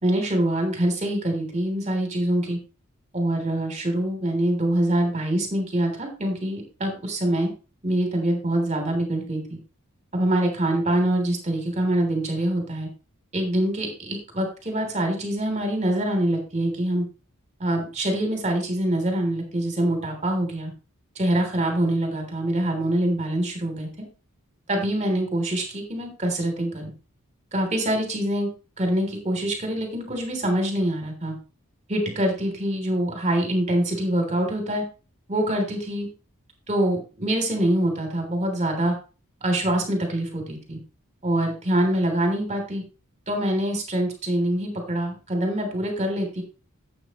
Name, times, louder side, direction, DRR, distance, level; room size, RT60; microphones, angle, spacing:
voice 1, 0.0-2.6 3.1-7.5 7.8-9.6 10.1-12.9 13.3-17.0 17.6-20.7 21.1-23.9 24.7-26.9 27.5-28.5 28.8-31.3 31.9-34.8 35.3-36.1 36.7-38.9 39.4-40.8 41.2-42.8 43.3-46.4, right 1 dB, 35° right, 3 dB, 3.2 m, -25 dB
12.5 x 8.3 x 3.1 m, 0.34 s
head